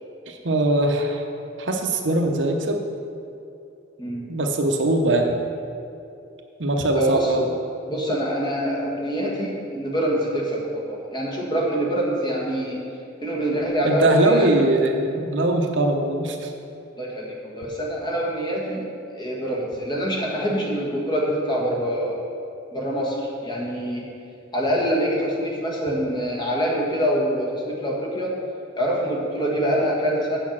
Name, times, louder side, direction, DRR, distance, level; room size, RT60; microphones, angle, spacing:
voice 1, 0.3-1.2 1.6-2.8 4.3-5.3 6.6-7.5 13.8-16.5, right 1 dB, 70° right, 3 dB, 0.9 m, -21 dB
voice 2, 6.9-7.4 7.9-12.8 13.2-14.6 17.0-18.8 19.1-22.2 22.7-24.1 24.5-28.3 28.8-30.4, equal, 25° left, -3 dB, 1.6 m, -25 dB
8.6 x 5.3 x 7.3 m, 2.6 s
head